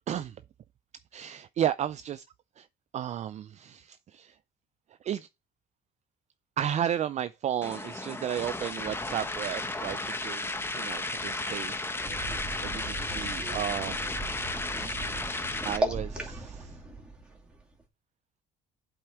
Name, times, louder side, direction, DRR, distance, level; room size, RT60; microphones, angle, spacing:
voice 1, 0.1-0.4 1.1-2.2 2.6-2.7 2.9-4.4 5.0-5.3 6.6-12.3 12.6-14.1 15.6-16.8, right 10 dB, 45° right, 0.4 m, -33 dB
sound 1, 7.6-15.8, left 2 dB, 15° left, 1.0 m, -34 dB
sound 2, 12.0-17.8, right 1 dB, 5° right, 2.4 m, -37 dB
7.8 x 4.4 x 5.8 m
cardioid pair, 110°, 17 cm